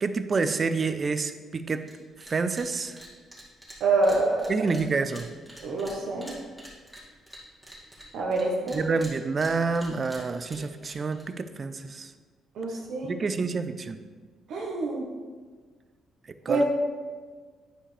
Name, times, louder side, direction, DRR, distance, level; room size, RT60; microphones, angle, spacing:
voice 1, 0.0-1.8 2.3-3.0 4.5-5.3 8.7-12.1 13.0-14.0 16.5-16.6, right 4 dB, 35° right, 11 dB, 0.5 m, -28 dB
sound 1, 1.8-1.9 2.2-2.7 3.0-8.4 8.7-11.2, equal, 5° right, 2.1 m, -46 dB
voice 2, 3.8-4.5 5.6-6.4 8.1-8.8 12.5-13.1 14.5-15.1 16.5-16.6, right 2 dB, 75° right, -2 dB, 1.1 m, -26 dB
10.0 x 5.0 x 3.3 m, 1.5 s
cardioid pair, 90°, 0 cm